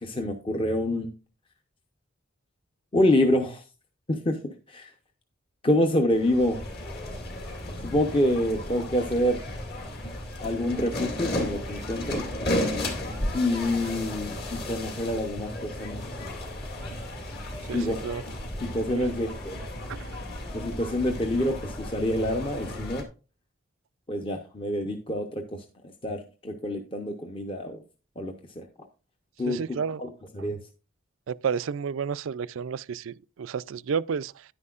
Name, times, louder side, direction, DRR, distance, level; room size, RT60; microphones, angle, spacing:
voice 1, 0.0-1.1 2.9-3.6 4.1-4.4 4.7-4.9 5.6-6.6 7.8-9.4 10.4-12.2 13.3-16.0 17.7-18.0 18.6-19.6 20.5-23.0 24.1-25.6 26.0-27.8 28.2-28.6 29.4-29.6 30.3-30.6, left 1 dB, 25° left, 0.8 m, -26 dB
sound 1, 6.1-23.0, left 1 dB, 50° left, 2.2 m, -34 dB
voice 2, 17.7-18.2 18.9-19.1 19.9-20.1 29.4-30.0 31.3-34.4, right 6 dB, 70° right, 0.4 m, -31 dB
10.5 x 9.6 x 2.4 m
head